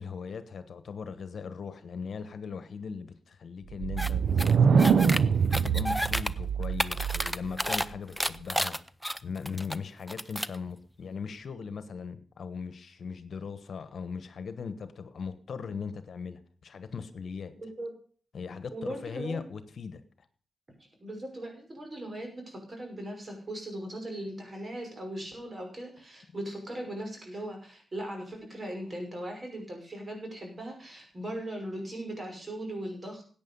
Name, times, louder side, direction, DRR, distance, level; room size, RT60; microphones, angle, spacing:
voice 1, 0.0-5.0 5.6-8.8 9.2-17.5 18.3-20.0, left 5 dB, 70° left, 1.2 m, -39 dB
sound 1, 3.7-7.5, right 6 dB, 75° right, 0.8 m, -24 dB
sound 2, 4.0-4.1 4.4-5.2 5.5-6.3 6.6-7.8 8.2-9.7 10.1-10.6, equal, ahead, 0.6 m, -31 dB
voice 2, 17.5-17.9 18.7-19.4 21.0-33.3, right 1 dB, 40° right, 5.8 m, -39 dB
14.0 x 9.1 x 5.5 m
cardioid pair, 65°, 0 cm